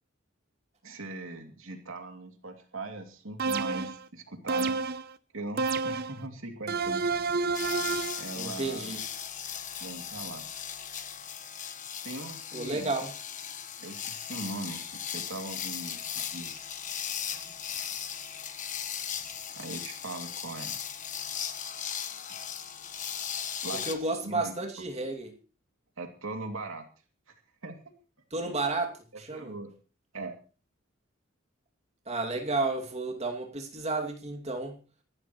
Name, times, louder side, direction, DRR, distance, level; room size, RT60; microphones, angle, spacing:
voice 1, 0.8-4.8 5.3-7.0 8.2-8.9 9.8-10.5 12.0-12.9 13.8-14.8 15.1-16.7 19.6-20.8 23.6-23.9 24.2-24.5 26.0-26.9 27.6-27.8 29.1-29.7 30.1-30.3, right 2 dB, 85° right, 2.6 m, -40 dB
sound 1, 3.4-4.0 4.5-5.1 5.6-6.2 6.7-8.3, right 4 dB, 50° right, 0.7 m, -29 dB
sound 2, 7.5-24.0, left 8 dB, 40° left, 1.3 m, -37 dB
voice 2, 8.4-9.0 12.5-13.1 23.7-25.4 28.3-29.5 32.1-34.8, right 3 dB, 30° right, 2.4 m, -32 dB
24.5 x 12.0 x 3.1 m
head